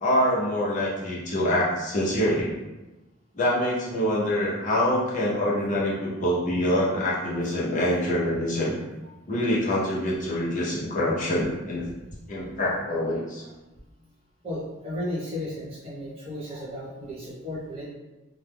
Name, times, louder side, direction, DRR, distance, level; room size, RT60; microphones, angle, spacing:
voice 1, 0.0-2.5 3.3-8.8 9.3-11.9 12.3-13.4, left 1 dB, 40° left, -6 dB, 0.6 m, -25 dB
voice 2, 14.4-17.9, left 1 dB, 30° right, -8 dB, 0.9 m, -34 dB
2.2 x 2.0 x 3.3 m, 1.1 s
head